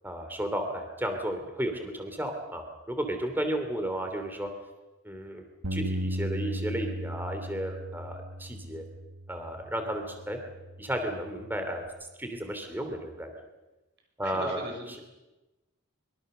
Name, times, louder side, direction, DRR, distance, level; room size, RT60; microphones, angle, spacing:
voice 1, 0.0-4.5 5.0-5.4 5.7-8.8 9.3-10.4 10.8-11.8 12.2-13.3 14.2-14.6 14.9-15.0, right 1 dB, 10° right, 5 dB, 2.8 m, -33 dB
Bass guitar, 5.6-11.9, equal, 80° right, 1.5 m, -37 dB
voice 2, 14.2-15.0, right 1 dB, 55° right, 3 dB, 6.4 m, -39 dB
24.0 x 23.5 x 6.7 m, 1.1 s
head